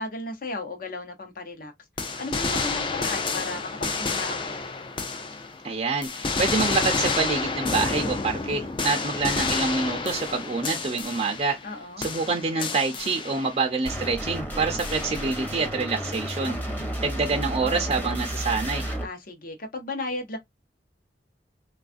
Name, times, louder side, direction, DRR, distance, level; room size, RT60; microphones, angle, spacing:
voice 1, 0.0-1.7 2.2-4.6 11.6-12.0 16.4-16.9 19.0-20.4, left 2 dB, 50° left, 0.8 m, -35 dB
sound 1, 2.0-5.7 6.0-11.7 12.0-13.7 14.8-15.5, left 4 dB, 30° left, 0.4 m, -29 dB
voice 2, 5.6-11.6 12.0-16.6 17.0-18.9, right 4 dB, 35° right, 0.5 m, -26 dB
sound 2, 13.9-19.0, equal, 10° left, 0.8 m, -32 dB
3.3 x 2.4 x 2.4 m
head